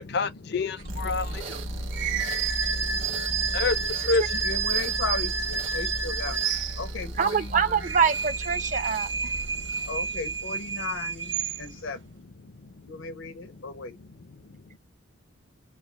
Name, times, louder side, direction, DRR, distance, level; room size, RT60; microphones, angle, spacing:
voice 1, 0.0-4.5 5.7-5.8 6.3-6.5 8.5-10.1 10.7-14.8, left 4 dB, 55° left, 0.5 m, -34 dB
sound 1, 0.8-10.8, right 1 dB, 85° right, 1.2 m, -36 dB
sound 2, 1.9-7.2 7.6-11.9, right 5 dB, 65° right, 1.0 m, -30 dB
voice 2, 4.4-6.4 6.8-7.9 9.9-12.1 12.8-14.0, left 3 dB, 85° left, 1.0 m, -36 dB
voice 3, 7.2-9.3, right 6 dB, 40° right, 0.5 m, -25 dB
4.7 x 2.0 x 3.9 m
head